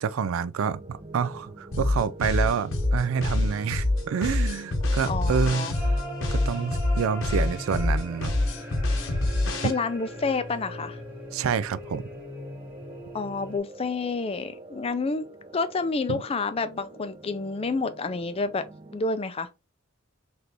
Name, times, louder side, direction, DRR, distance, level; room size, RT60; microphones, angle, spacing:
voice 1, 0.0-5.8 6.3-8.4 9.6-9.7 11.3-12.1 16.1-16.2, right 6 dB, 75° right, 0.3 m, -28 dB
sound 1, 0.7-19.1, right 2 dB, 30° right, 0.6 m, -46 dB
sound 2, 1.7-9.7, left 2 dB, 70° left, 0.9 m, -25 dB
voice 2, 5.0-5.7 9.6-11.0 13.1-15.3 15.5-18.6 18.9-19.5, left 3 dB, 30° left, 0.4 m, -29 dB
sound 3, 5.7-13.6, equal, 10° right, 1.4 m, -40 dB
3.9 x 3.3 x 2.9 m
head